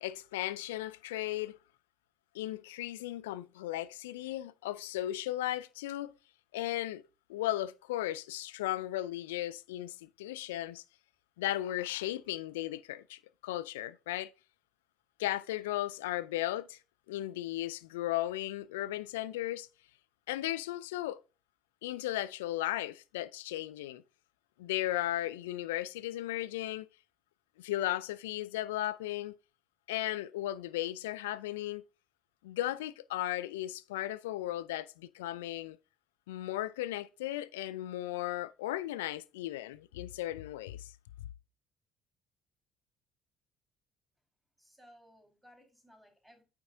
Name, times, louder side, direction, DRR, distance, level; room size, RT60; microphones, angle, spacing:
voice 1, 0.0-1.6 2.3-6.1 6.5-7.0 7.3-10.8 11.4-14.3 15.2-16.8 17.1-19.7 20.3-21.2 21.8-24.0 24.6-26.9 27.6-29.4 29.9-31.8 32.4-35.8 36.3-40.9 41.2-41.3, left 14 dB, 80° left, 0.3 m, -36 dB
voice 2, 44.6-46.4, equal, 5° right, 4.7 m, -60 dB
8.8 x 6.1 x 2.7 m
hypercardioid pair, 50°, 0 cm